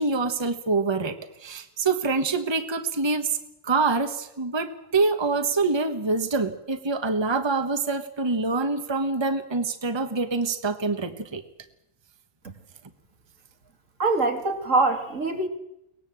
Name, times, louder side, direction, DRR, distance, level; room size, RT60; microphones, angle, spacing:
voice 1, 0.0-3.4 3.6-11.4, right 3 dB, 20° right, 8 dB, 1.3 m, -25 dB
voice 2, 14.0-15.5, right 3 dB, 70° right, 4 dB, 2.9 m, -23 dB
23.0 x 19.5 x 7.7 m, 0.84 s
omnidirectional pair, 1.4 m